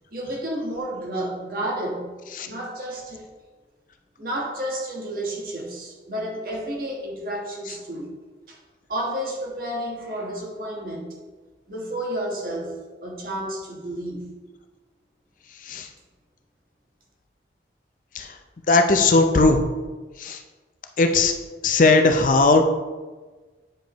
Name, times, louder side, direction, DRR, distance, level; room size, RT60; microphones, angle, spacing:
voice 1, 0.1-2.2 2.4-3.3 4.2-8.1 8.5-8.6 8.9-11.1 11.7-14.3, right 1 dB, 50° right, -1 dB, 1.3 m, -31 dB
voice 2, 18.7-19.6 20.2-20.4 21.0-21.3 21.6-22.6, left 3 dB, 45° left, 5 dB, 0.5 m, -18 dB
8.8 x 5.0 x 3.0 m, 1.3 s
head